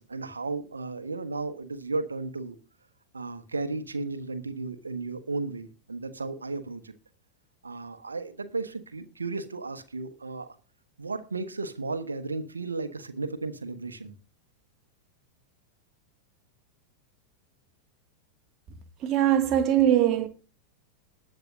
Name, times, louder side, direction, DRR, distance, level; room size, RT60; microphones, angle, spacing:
voice 1, 0.0-2.5 3.1-6.9 7.6-10.6 11.0-14.1, right 3 dB, 75° right, 1.4 m, -34 dB
voice 2, 19.0-20.3, right 11 dB, 35° right, 1.6 m, -21 dB
20.0 x 7.7 x 2.7 m
figure-of-eight pair, 90°, 0 cm